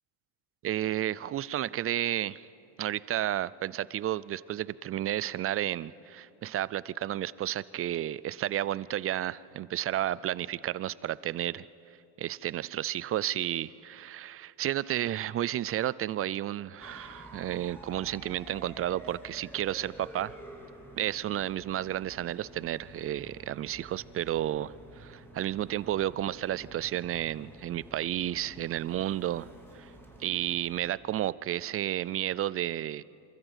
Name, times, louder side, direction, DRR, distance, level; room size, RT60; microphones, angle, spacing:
voice 1, 0.6-2.5 2.8-11.6 12.2-20.3 20.9-29.5 29.7-29.9 30.2-33.0, right 12 dB, 30° right, 20 dB, 0.4 m, -32 dB
sound 1, 16.8-30.9, right 1 dB, 5° left, 3.3 m, -50 dB
26.5 x 13.5 x 8.1 m, 2.8 s
supercardioid pair, 90°, 47 cm